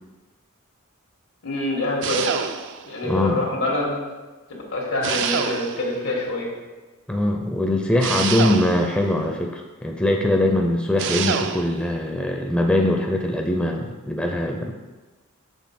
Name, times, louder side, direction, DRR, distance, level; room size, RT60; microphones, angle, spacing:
voice 1, 1.4-2.3 2.8-4.0 4.7-6.5, left 2 dB, 90° left, -3 dB, 1.6 m, -25 dB
sound 1, 2.0-2.9 5.0-6.0 8.0-9.0 11.0-11.8, right 7 dB, 55° right, 0.4 m, -26 dB
voice 2, 3.0-3.4 7.1-14.7, left 1 dB, 5° left, 1 dB, 0.4 m, -22 dB
6.3 x 3.6 x 5.8 m, 1.2 s
head